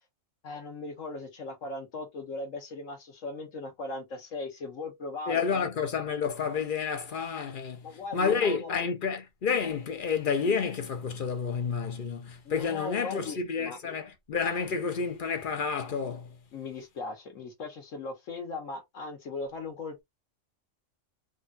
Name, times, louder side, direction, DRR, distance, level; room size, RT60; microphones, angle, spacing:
voice 1, 0.4-5.9 7.8-8.9 12.4-13.8 16.5-20.0, left 3 dB, 85° left, 1.6 m, -38 dB
voice 2, 5.3-16.4, left 5 dB, 50° left, 0.7 m, -30 dB
3.7 x 2.3 x 2.5 m
omnidirectional pair, 1.3 m